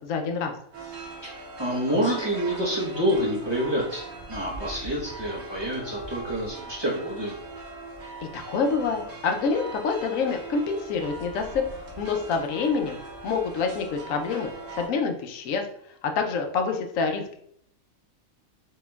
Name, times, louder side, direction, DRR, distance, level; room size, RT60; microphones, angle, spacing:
voice 1, 0.0-0.5 8.3-11.6 12.0-13.0 13.2-15.6 16.0-17.4, left 5 dB, 75° left, 4 dB, 0.9 m, -27 dB
sound 1, 0.7-14.9, right 2 dB, 65° right, 1.2 m, -40 dB
voice 2, 1.6-7.3, equal, 25° right, -5 dB, 0.7 m, -27 dB
4.6 x 2.9 x 2.2 m, 0.67 s
omnidirectional pair, 1.4 m